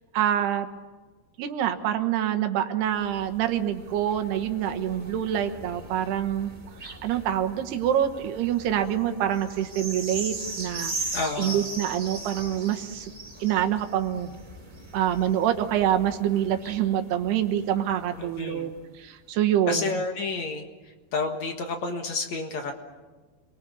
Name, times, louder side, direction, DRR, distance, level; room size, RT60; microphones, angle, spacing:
voice 1, 0.1-0.7 1.4-6.5 6.8-10.9 11.4-13.1 13.4-14.4 14.9-20.0, right 10 dB, 85° right, 6 dB, 3.4 m, -26 dB
sound 1, 2.8-18.7 19.3-19.4, right 2 dB, 20° right, 4.1 m, -40 dB
voice 2, 11.1-11.7 18.2-18.7 19.7-20.7 21.1-22.7, left 3 dB, 55° left, 4 dB, 2.4 m, -30 dB
29.0 x 22.5 x 7.0 m, 1.3 s
omnidirectional pair, 4.6 m